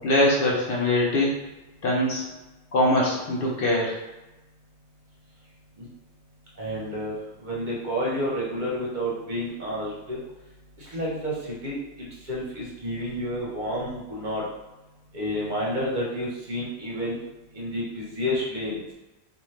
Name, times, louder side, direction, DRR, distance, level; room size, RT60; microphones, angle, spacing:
voice 1, 0.0-1.4 1.8-2.2 2.7-3.9, left 1 dB, 60° left, -3 dB, 0.8 m, -22 dB
voice 2, 6.6-7.1 7.4-10.2 10.8-11.7 12.3-14.4 15.1-17.2 17.5-18.8, equal, 50° right, -5 dB, 0.8 m, -30 dB
2.7 x 2.4 x 3.1 m, 1.1 s
omnidirectional pair, 1.1 m